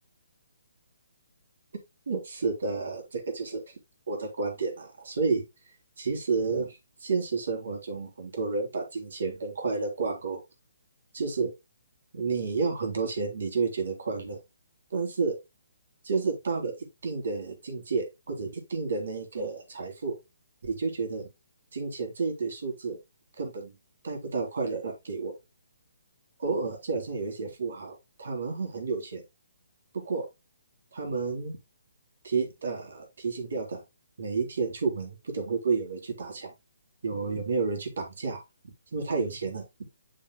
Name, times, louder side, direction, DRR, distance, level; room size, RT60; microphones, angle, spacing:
voice 1, 2.1-3.6 4.1-5.4 6.0-10.4 11.1-11.5 12.1-14.4 14.9-15.4 16.0-20.1 20.6-21.3 21.7-23.0 23.4-23.7 24.0-25.3 26.4-29.2 29.9-30.2 30.9-31.6 32.2-33.8 34.2-36.5 37.0-38.4 38.9-39.6, right 4 dB, 65° right, 3 dB, 3.8 m, -31 dB
9.5 x 6.6 x 2.3 m, 0.22 s
figure-of-eight pair, 140°, 0 cm